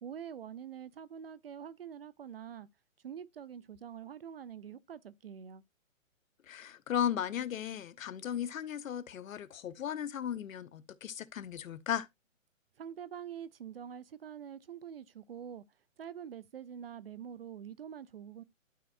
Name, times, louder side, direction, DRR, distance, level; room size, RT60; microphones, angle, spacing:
voice 1, 0.0-2.7 3.0-5.6 12.8-15.6 16.0-18.4, right 8 dB, 50° right, 0.4 m, -45 dB
voice 2, 6.5-12.1, left 9 dB, 75° left, 0.8 m, -36 dB
12.0 x 4.3 x 2.5 m
hypercardioid pair, 160°, 40 cm